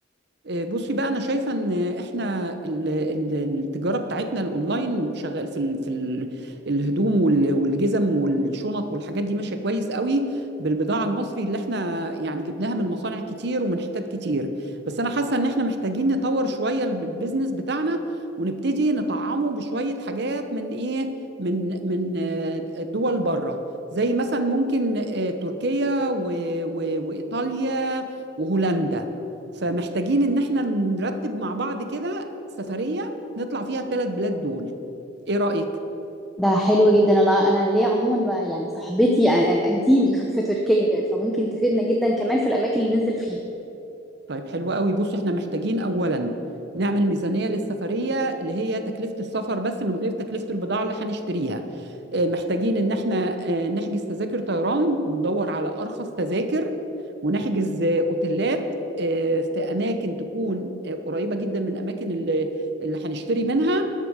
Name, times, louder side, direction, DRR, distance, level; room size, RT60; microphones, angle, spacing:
voice 1, 0.4-14.6 14.9-18.0 18.4-21.1 21.4-23.6 23.9-28.1 28.4-29.1 29.6-32.3 32.6-34.7 35.3-35.7 44.3-46.4 46.7-51.6 52.1-56.7 57.2-58.7 59.0-62.5 62.8-63.9, right 1 dB, 60° right, 8 dB, 0.9 m, -25 dB
voice 2, 36.4-43.4, equal, ahead, -1 dB, 0.8 m, -20 dB
13.0 x 8.3 x 6.4 m, 2.9 s
head